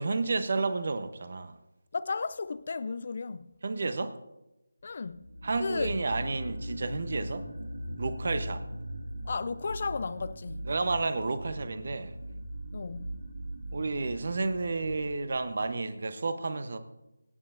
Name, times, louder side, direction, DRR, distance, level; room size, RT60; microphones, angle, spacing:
voice 1, 0.0-1.5 3.6-4.2 5.4-7.5 8.0-8.6 10.6-12.1 13.7-16.8, right 3 dB, 50° right, 1.0 m, -31 dB
voice 2, 1.9-3.5 4.8-5.2 5.6-6.0 9.3-10.7 12.7-13.1, left 4 dB, 45° left, 0.4 m, -34 dB
sound 1, 5.1-15.7, equal, 70° right, 1.5 m, -40 dB
25.5 x 8.8 x 2.7 m
figure-of-eight pair, 160°, 0 cm